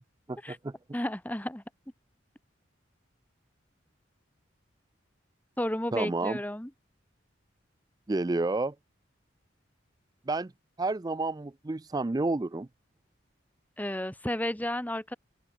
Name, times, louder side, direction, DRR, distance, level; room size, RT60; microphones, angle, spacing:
voice 1, 0.3-0.7 5.9-6.4 8.1-8.7 10.3-10.5 10.8-12.7, right 2 dB, 20° right, 0.4 m, -30 dB
voice 2, 0.9-1.6 5.6-6.7 13.8-15.2, left 1 dB, 10° left, 1.3 m, -32 dB
head